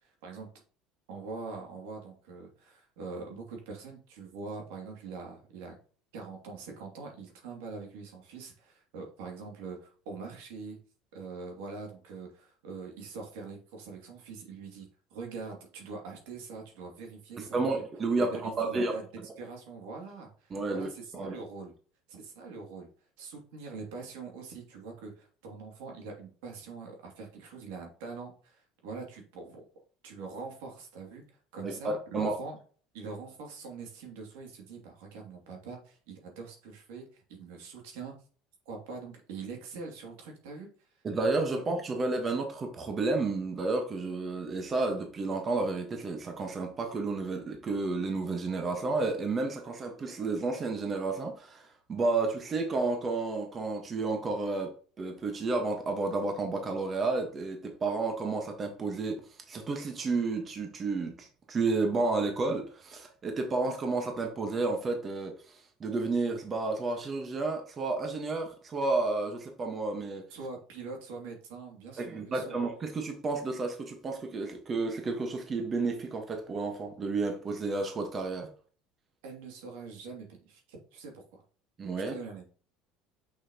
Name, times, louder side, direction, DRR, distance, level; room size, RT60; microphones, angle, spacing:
voice 1, 0.0-0.5 1.1-5.8 6.1-10.8 11.1-17.6 18.2-19.0 19.4-21.7 22.1-22.9 23.2-29.7 30.0-31.2 31.5-32.6 32.9-38.1 38.7-40.7 70.3-72.6 79.2-81.4 81.9-82.5, right 4 dB, 85° right, 2.6 m, -43 dB
voice 2, 17.4-19.3 20.5-20.9 21.1-21.3 31.6-32.4 41.0-70.3 72.0-78.5 81.8-82.1, right 3 dB, 25° right, 1.4 m, -31 dB
6.2 x 6.0 x 3.0 m
cardioid pair, 130°, 0 cm